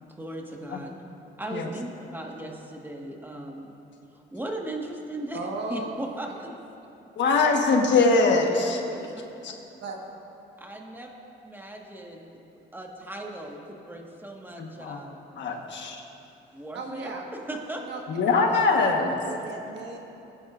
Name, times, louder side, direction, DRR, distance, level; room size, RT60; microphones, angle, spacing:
voice 1, 0.2-0.9 1.4-3.7 4.1-6.5 10.6-11.1 11.4-12.4 12.7-15.2 16.5-17.2 17.5-17.8, right 1 dB, 10° right, 0 dB, 1.7 m, -37 dB
voice 2, 5.3-6.0 8.4-9.1 9.8-10.2 15.6-15.7 16.7-17.2 17.9-18.0 18.7-20.0, right 3 dB, 65° right, 1 dB, 1.6 m, -37 dB
voice 3, 7.2-8.8 9.4-9.5 14.6-15.0 15.3-16.0 18.1-19.1, left 3 dB, 65° left, 2 dB, 1.4 m, -22 dB
20.5 x 10.5 x 2.6 m, 2.9 s
cardioid pair, 90°, 20 cm